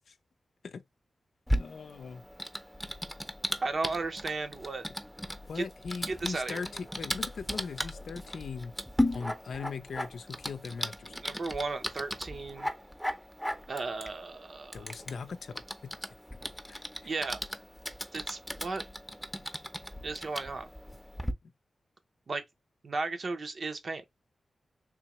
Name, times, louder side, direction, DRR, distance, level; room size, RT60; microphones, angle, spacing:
Typing, 1.5-21.3, equal, ahead, 0.7 m, -37 dB
voice 1, 1.6-2.2 5.5-8.7 9.1-11.2 14.7-15.9 16.7-16.8, left 5 dB, 80° left, 0.4 m, -40 dB
voice 2, 3.6-4.8 5.5-5.6 6.1-6.6 11.1-12.7 13.7-14.8 17.0-17.4 18.1-18.9 20.0-20.7 22.3-22.4 22.8-24.0, right 3 dB, 60° right, 0.8 m, -35 dB
3.7 x 2.8 x 3.0 m
cardioid pair, 55°, 0 cm